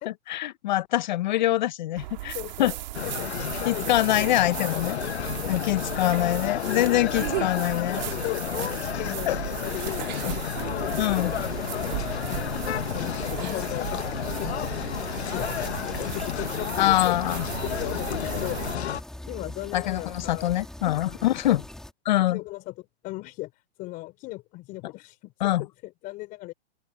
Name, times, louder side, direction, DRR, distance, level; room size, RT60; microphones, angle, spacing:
voice 1, 0.1-2.7 3.6-5.0 5.5-8.0 9.3-9.4 11.0-11.3 16.8-17.5 19.7-21.6 22.0-22.4 25.4-25.7, left 14 dB, 45° left, 0.9 m, -24 dB
sound 1, 2.0-18.8, right 17 dB, 45° right, 2.1 m, -36 dB
voice 2, 2.3-3.9 4.2-5.0 6.6-7.1 8.2-11.9 12.3-12.6 12.9-17.1 17.6-18.9 19.3-20.6 21.1-21.3 22.1-22.7 23.0-23.5 23.8-26.5, left 19 dB, 25° left, 4.8 m, -38 dB
sound 2, 2.9-19.0, left 10 dB, 80° left, 1.1 m, -32 dB
sound 3, 11.1-21.9, left 1 dB, ahead, 2.7 m, -43 dB
open air
hypercardioid pair, 155°, 32 cm